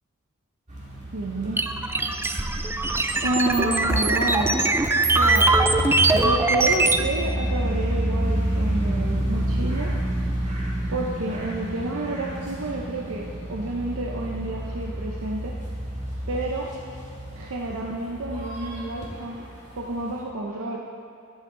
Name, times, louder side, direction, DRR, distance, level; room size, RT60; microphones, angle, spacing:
sound 1, 0.7-20.2, right 1 dB, 35° right, 2.0 m, -30 dB
voice 1, 1.1-1.7 3.2-4.6 5.1-10.0 10.9-15.6 16.3-16.7 17.3-19.5 19.8-20.8, right 2 dB, 85° right, -1 dB, 0.7 m, -29 dB
sound 2, 1.6-7.0, right 2 dB, 10° right, 0.3 m, -21 dB
12.5 x 8.1 x 3.8 m, 2.4 s
head